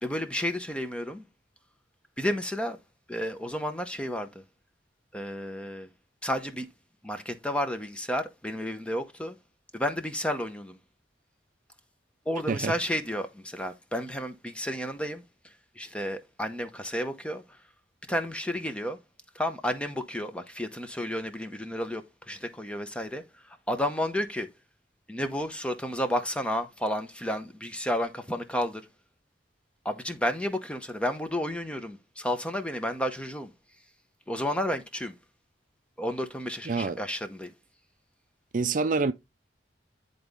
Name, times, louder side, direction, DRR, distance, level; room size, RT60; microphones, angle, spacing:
voice 1, 0.0-1.3 2.2-2.8 3.1-4.4 5.1-5.9 6.2-6.7 7.0-9.4 9.7-10.8 12.3-15.2 15.8-17.6 18.1-19.0 19.3-24.5 25.1-28.8 29.8-33.5 34.3-35.1 36.0-37.5, equal, 5° left, 0.8 m, -31 dB
voice 2, 36.7-37.0 38.5-39.1, right 4 dB, 45° right, 0.4 m, -26 dB
10.0 x 4.0 x 3.6 m
head